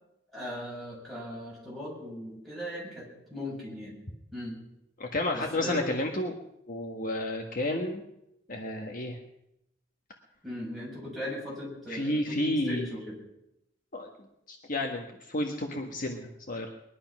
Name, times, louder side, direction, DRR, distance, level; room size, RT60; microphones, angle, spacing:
voice 1, 0.3-3.9 4.3-4.5 5.3-5.8 10.4-13.2, left 1 dB, ahead, -6 dB, 7.2 m, -38 dB
voice 2, 5.0-6.3 6.7-8.0 8.5-9.2 11.9-12.9 13.9-14.1 14.5-16.7, left 1 dB, 45° left, 2 dB, 1.4 m, -31 dB
21.0 x 11.5 x 6.0 m, 0.85 s
head